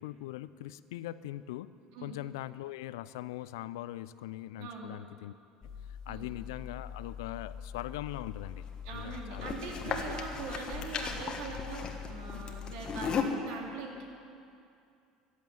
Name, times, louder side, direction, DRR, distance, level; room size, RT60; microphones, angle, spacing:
voice 1, 0.0-1.7 2.0-5.3 5.9-8.7 8.9-10.1, left 15 dB, 70° left, 16 dB, 0.4 m, -41 dB
voice 2, 4.6-5.0 6.1-6.3 8.8-14.1, right 4 dB, 65° right, 0 dB, 2.7 m, -42 dB
sound 1, 5.6-13.2, left 6 dB, 40° left, 1.5 m, -38 dB
14.5 x 8.3 x 9.6 m, 2.5 s
hypercardioid pair, 70°, 2 cm